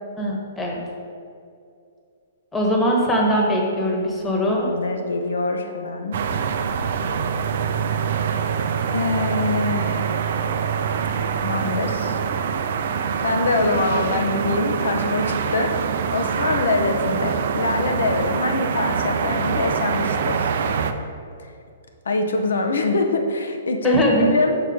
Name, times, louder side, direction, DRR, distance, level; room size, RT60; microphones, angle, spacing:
voice 1, 0.2-0.8 2.5-4.7 23.8-24.4, equal, 10° left, -2 dB, 1.3 m, -21 dB
voice 2, 4.3-6.2 8.9-10.0 11.4-12.2 13.2-15.7 16.1-20.5 21.4-21.5 22.1-24.6, left 3 dB, 75° left, 4 dB, 0.8 m, -24 dB
sound 1, 6.1-20.9, right 6 dB, 60° right, 0.4 m, -24 dB
5.9 x 4.4 x 5.1 m, 2.4 s
hypercardioid pair, 125°, 0 cm